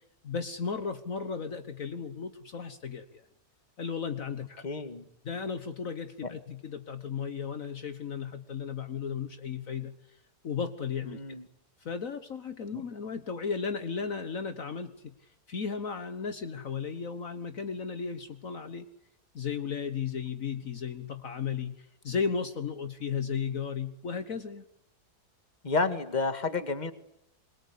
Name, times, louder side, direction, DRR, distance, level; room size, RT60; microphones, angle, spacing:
voice 1, 0.2-3.2 3.8-4.7 5.3-9.9 10.4-11.4 11.8-15.1 15.5-18.9 19.4-24.6, left 6 dB, 60° left, 9 dB, 1.6 m, -35 dB
voice 2, 4.6-5.1 6.2-6.3 11.1-11.5 12.7-12.8 25.6-26.9, left 3 dB, 30° left, 9 dB, 1.9 m, -30 dB
27.5 x 22.5 x 8.5 m, 0.80 s
omnidirectional pair, 1.7 m